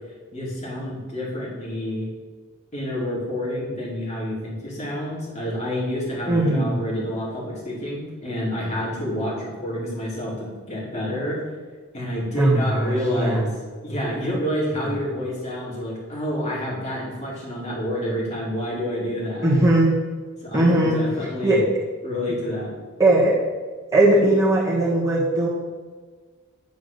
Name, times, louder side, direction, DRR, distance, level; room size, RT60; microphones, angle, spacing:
voice 1, 0.3-2.1 2.7-11.4 11.9-13.5 13.8-19.6 20.4-21.6 22.0-22.7, equal, 30° left, -5 dB, 2.2 m, -28 dB
voice 2, 6.3-6.7 12.4-13.4 19.4-20.0 20.5-21.0 21.4-21.6 23.0-23.3 23.9-25.5, right 1 dB, 15° right, -6 dB, 1.4 m, -19 dB
9.5 x 3.6 x 6.6 m, 1.5 s
head